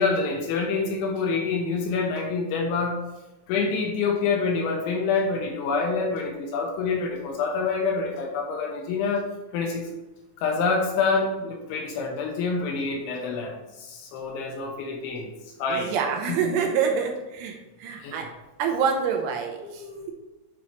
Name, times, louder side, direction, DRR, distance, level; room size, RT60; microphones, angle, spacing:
voice 1, 0.0-3.0 3.5-9.3 9.5-9.9 10.4-15.3 15.6-15.9 16.3-16.4 18.0-18.2 19.6-20.1, left 4 dB, 80° left, 1 dB, 3.0 m, -27 dB
voice 2, 15.7-18.3 18.6-19.9, right 6 dB, 80° right, 2 dB, 3.1 m, -26 dB
8.6 x 5.4 x 3.1 m, 1.0 s
omnidirectional pair, 5.9 m